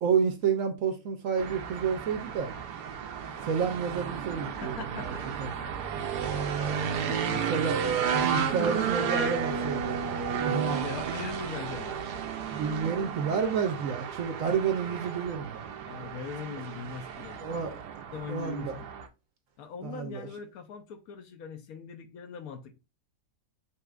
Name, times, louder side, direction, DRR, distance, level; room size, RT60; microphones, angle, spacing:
voice 1, 0.0-2.5 3.4-5.5 7.5-7.8 8.1-9.9 10.4-10.9 12.5-15.6 17.4-17.7 18.3-18.8 19.8-20.2, right 6 dB, 65° right, 0.9 m, -30 dB
sound 1, 1.4-19.1, right 7 dB, 90° right, 1.2 m, -33 dB
voice 2, 4.6-5.8 6.8-7.8 8.3-8.4 10.8-12.0 15.9-17.8 18.1-18.9 19.6-22.8, left 6 dB, 70° left, 1.0 m, -41 dB
5.4 x 2.5 x 2.4 m
omnidirectional pair, 1.7 m